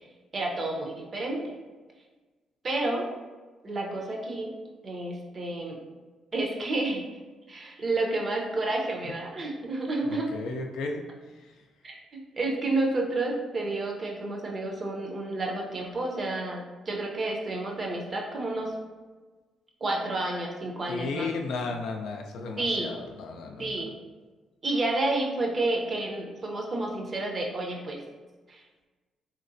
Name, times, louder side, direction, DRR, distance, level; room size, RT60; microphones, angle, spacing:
voice 1, 0.3-1.4 2.6-3.1 3.6-4.5 4.8-5.8 6.3-7.1 7.5-10.3 11.8-12.0 12.4-18.7 19.8-21.3 22.6-22.9 23.6-23.9 24.6-28.0 28.5-28.6, right 2 dB, 40° right, 0 dB, 0.6 m, -30 dB
voice 2, 10.1-11.0 11.3-11.5 20.9-23.8, left 3 dB, 85° left, 2 dB, 0.4 m, -34 dB
3.1 x 2.8 x 2.5 m, 1.3 s
cardioid pair, 90°, 0 cm